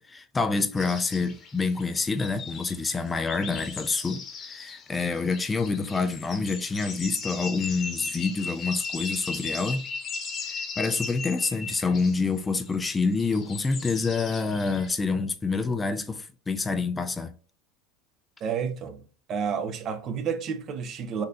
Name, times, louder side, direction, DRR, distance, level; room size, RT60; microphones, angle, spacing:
voice 1, 0.0-9.8 10.5-17.3, left 4 dB, 20° left, 0.3 m, -27 dB
sound 1, 0.8-14.9, left 4 dB, 40° left, 0.9 m, -38 dB
voice 2, 18.4-19.0 19.3-21.3, right 6 dB, 45° right, 0.5 m, -30 dB
3.8 x 2.7 x 2.5 m
hypercardioid pair, 95°, 0 cm